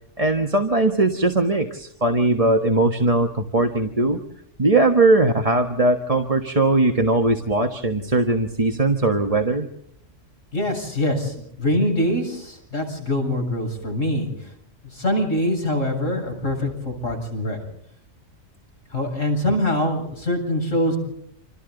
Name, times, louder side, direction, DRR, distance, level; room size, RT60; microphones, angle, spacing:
voice 1, 0.2-4.2 4.6-9.7, right 2 dB, 30° right, 4 dB, 1.5 m, -20 dB
voice 2, 10.5-14.5 14.9-17.6 18.9-21.0, left 1 dB, 80° left, 3 dB, 8.2 m, -24 dB
29.5 x 27.5 x 3.9 m, 0.75 s
omnidirectional pair, 1.3 m